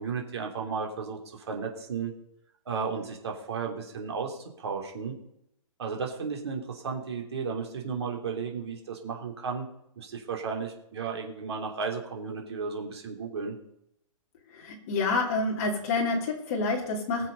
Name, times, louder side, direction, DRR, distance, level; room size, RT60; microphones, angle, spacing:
voice 1, 0.0-2.1 2.6-5.1 5.8-9.7 10.0-13.6, right 5 dB, 50° right, 2 dB, 3.0 m, -34 dB
voice 2, 14.5-17.3, left 3 dB, 25° left, -1 dB, 2.7 m, -28 dB
20.0 x 7.3 x 5.5 m, 0.76 s
hypercardioid pair, 175°, 18 cm